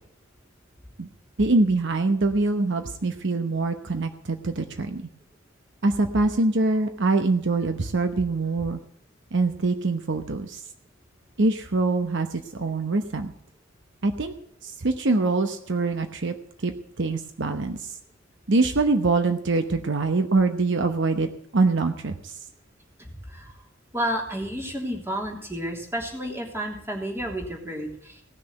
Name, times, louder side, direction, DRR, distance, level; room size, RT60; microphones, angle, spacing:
voice 1, 1.4-5.1 5.8-8.8 9.3-10.6 11.4-13.3 14.0-14.3 14.6-16.3 16.6-16.7 17.0-17.8 18.5-22.3, right 3 dB, 60° right, 7 dB, 1.0 m, -24 dB
voice 2, 23.0-23.5 23.9-28.2, equal, 10° right, 0 dB, 3.2 m, -31 dB
17.5 x 6.8 x 8.0 m, 0.72 s
head